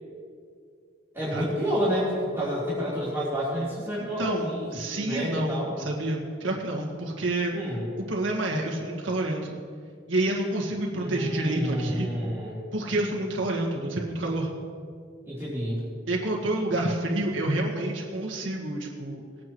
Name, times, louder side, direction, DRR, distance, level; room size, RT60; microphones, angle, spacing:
voice 1, 1.1-5.7 7.5-7.8 10.9-12.6 15.2-15.8, equal, 15° right, -11 dB, 3.5 m, -29 dB
voice 2, 4.2-7.5 8.0-9.6 10.1-12.1 12.7-14.5 16.1-19.2, right 1 dB, 75° right, -2 dB, 1.9 m, -28 dB
20.5 x 9.1 x 3.1 m, 2.2 s
head